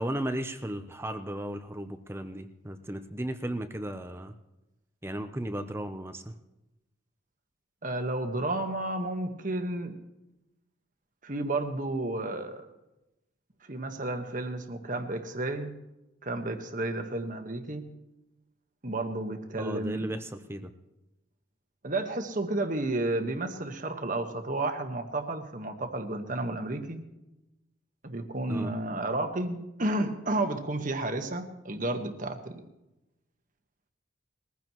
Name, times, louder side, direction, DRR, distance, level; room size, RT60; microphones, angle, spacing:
voice 1, 0.0-4.3 5.0-6.3 19.6-20.7 28.5-28.7, right 1 dB, 15° right, 8 dB, 0.7 m, -35 dB
voice 2, 7.8-9.9 11.2-12.6 13.7-15.7 16.2-17.8 18.8-20.1 21.8-27.0 28.0-32.6, right 2 dB, 45° right, 6 dB, 1.4 m, -32 dB
21.0 x 15.5 x 3.1 m, 0.95 s
head